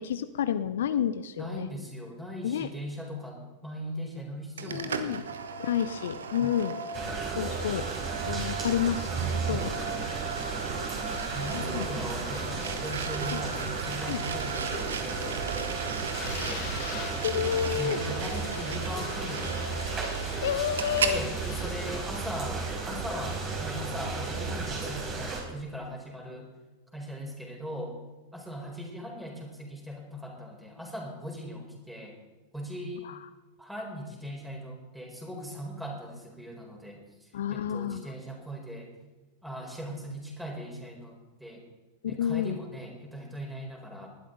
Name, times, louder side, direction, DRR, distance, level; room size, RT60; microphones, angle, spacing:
voice 1, 0.0-1.7 2.4-2.7 4.7-5.2 5.6-6.8 7.4-7.9 8.3-9.1 9.5-9.7 11.5-11.9 13.3-13.4 14.1-14.2 17.2-18.0 20.2-21.2 33.1-33.2 37.3-38.1 42.0-42.6, left 9 dB, 60° left, 12 dB, 0.6 m, -30 dB
voice 2, 1.4-5.2 6.4-6.6 9.5-9.8 11.3-16.7 17.7-19.7 21.0-26.5 26.9-28.0 28.3-32.2 32.5-33.1 33.6-38.9 39.4-41.7 42.1-44.1, equal, 5° right, 0 dB, 4.3 m, -39 dB
sound 1, 4.6-21.2, right 6 dB, 65° right, 1.1 m, -36 dB
sound 2, 6.9-25.4, right 4 dB, 30° right, 4.6 m, -34 dB
sound 3, 10.0-22.0, left 9 dB, 40° left, 1.6 m, -46 dB
19.5 x 12.0 x 3.9 m, 1.2 s
figure-of-eight pair, 90°, 0 cm